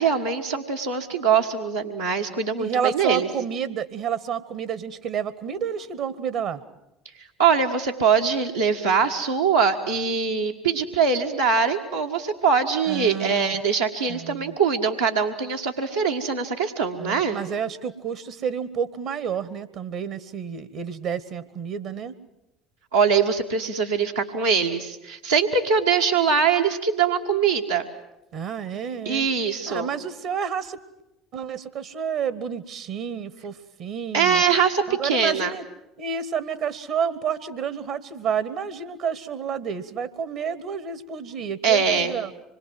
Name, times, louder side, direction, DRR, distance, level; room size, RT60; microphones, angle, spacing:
voice 1, 0.0-3.3 7.4-17.4 22.9-27.9 29.0-29.9 34.1-35.5 41.6-42.1, right 6 dB, 90° right, -4 dB, 1.7 m, -22 dB
voice 2, 2.6-6.6 12.9-13.6 14.1-14.5 17.0-22.1 28.3-29.3 29.7-30.8 31.3-34.4 34.9-35.6 36.0-42.3, right 7 dB, 55° right, 16 dB, 1.2 m, -30 dB
26.0 x 22.0 x 7.8 m, 0.88 s
figure-of-eight pair, 60°, 0 cm